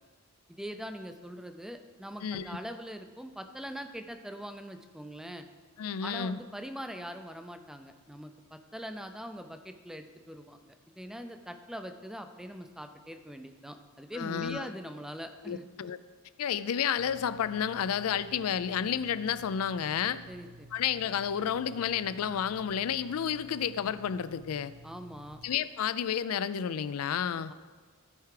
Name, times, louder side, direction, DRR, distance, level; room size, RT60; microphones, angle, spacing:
voice 1, 0.5-5.5 6.0-15.7 20.3-20.7 24.8-25.4, equal, ahead, 7 dB, 0.4 m, -42 dB
voice 2, 2.2-2.6 5.8-6.4 14.1-14.7 15.5-16.0 16.4-20.2 20.7-24.7 25.4-27.5, left 8 dB, 75° left, 16 dB, 0.4 m, -31 dB
sound 1, 17.0-25.6, right 1 dB, 65° right, 0.4 m, -53 dB
13.5 x 4.7 x 4.9 m, 1.5 s
head